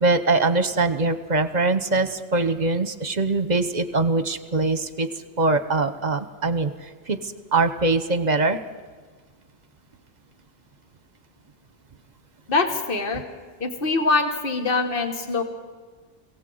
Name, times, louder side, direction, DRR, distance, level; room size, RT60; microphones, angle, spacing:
voice 1, 0.0-5.1 5.4-6.7 7.1-7.2 7.5-8.6, right 3 dB, 45° right, 11 dB, 1.0 m, -22 dB
voice 2, 12.5-13.3 13.6-15.4, left 3 dB, 60° left, 5 dB, 1.7 m, -23 dB
22.5 x 17.0 x 7.9 m, 1.4 s
omnidirectional pair, 1.1 m